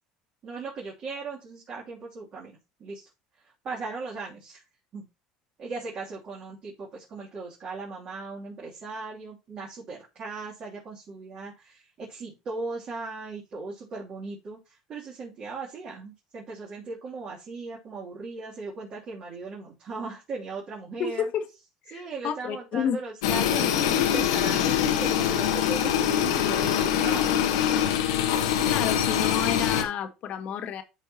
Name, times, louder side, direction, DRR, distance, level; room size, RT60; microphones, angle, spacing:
voice 1, 0.4-3.1 3.4-4.6 4.9-5.1 5.6-21.2 21.9-27.5, right 4 dB, 50° right, 3.0 m, -38 dB
voice 2, 21.0-21.4 21.9-23.0 28.7-30.8, left 8 dB, 55° left, 1.3 m, -30 dB
sound 1, 23.2-29.8, left 10 dB, 85° left, 1.1 m, -24 dB
12.0 x 4.5 x 2.9 m
hypercardioid pair, 80°, 3 cm